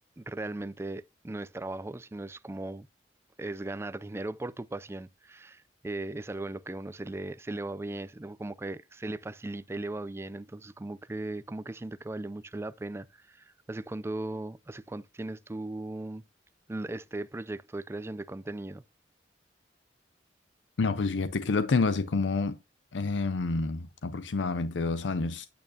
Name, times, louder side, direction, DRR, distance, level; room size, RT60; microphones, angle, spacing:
voice 1, 0.2-2.9 3.4-16.2 16.7-18.8, right 2 dB, 15° right, 0.3 m, -38 dB
voice 2, 20.8-22.6 22.9-25.5, left 3 dB, 85° left, 0.6 m, -28 dB
9.0 x 8.5 x 2.6 m
head